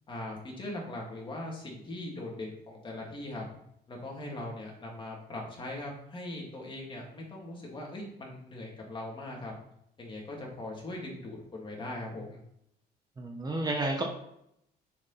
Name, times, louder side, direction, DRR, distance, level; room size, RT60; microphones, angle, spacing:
voice 1, 0.1-3.4 3.9-9.5 10.0-12.4, left 1 dB, 30° left, -2 dB, 2.5 m, -40 dB
voice 2, 13.2-14.0, right 2 dB, 25° right, 1 dB, 1.2 m, -31 dB
7.0 x 5.1 x 4.2 m, 0.76 s
cardioid pair, 110°, 17 cm